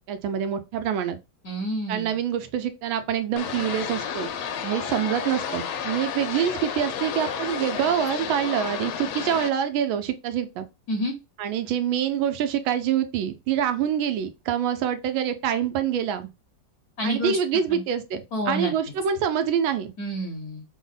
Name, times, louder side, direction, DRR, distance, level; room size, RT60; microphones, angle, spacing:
voice 1, 0.1-1.2 1.9-4.3 4.6-10.7 11.4-16.3 17.0-19.9, right 9 dB, 85° right, 1.4 m, -26 dB
voice 2, 1.4-2.2 10.9-11.1 17.0-17.4 17.7-17.8 18.3-18.7 20.0-20.6, equal, 60° left, 1.1 m, -28 dB
sound 1, 3.4-9.5, left 7 dB, 90° left, 1.4 m, -31 dB
3.5 x 2.0 x 3.8 m
omnidirectional pair, 2.2 m